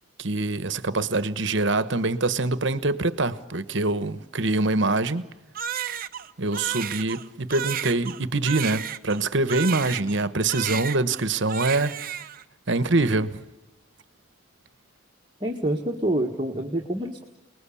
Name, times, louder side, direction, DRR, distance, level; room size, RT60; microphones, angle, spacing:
voice 1, 0.2-5.3 6.4-12.0 12.7-13.4, right 2 dB, 60° right, 1.2 m, -24 dB
Crying sobbing, 5.6-10.2 10.5-11.2 11.5-12.4, right 9 dB, 40° right, 0.8 m, -32 dB
voice 2, 15.4-17.3, right 1 dB, 20° right, 1.7 m, -27 dB
29.0 x 20.5 x 8.5 m
head